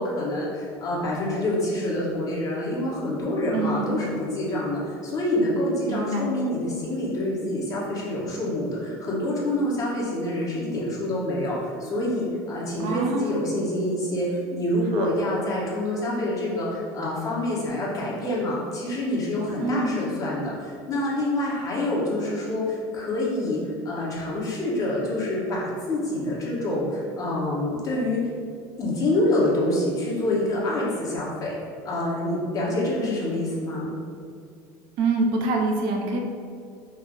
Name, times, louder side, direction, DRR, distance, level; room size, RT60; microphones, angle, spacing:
voice 1, 0.0-23.6 23.8-28.2 28.8-31.5 31.8-33.9, left 1 dB, 35° left, -6 dB, 1.4 m, -26 dB
voice 2, 3.5-4.0 5.9-6.3 12.8-13.3 14.9-15.1 19.6-20.0 35.0-36.2, right 3 dB, 65° right, 1 dB, 0.6 m, -25 dB
5.4 x 2.0 x 3.8 m, 2.4 s
supercardioid pair, 110°, 9 cm